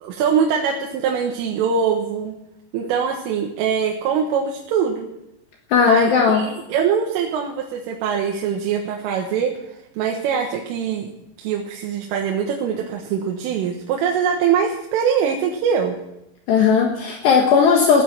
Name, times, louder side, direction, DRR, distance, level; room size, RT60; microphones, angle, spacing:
voice 1, 0.0-2.3 2.7-5.1 5.9-9.5 10.0-11.1 11.4-16.0, right 7 dB, 80° right, 0 dB, 3.8 m, -22 dB
voice 2, 5.7-6.4 16.5-18.0, left 6 dB, 65° left, 1 dB, 3.3 m, -16 dB
16.5 x 10.0 x 7.6 m, 0.86 s
omnidirectional pair, 5.9 m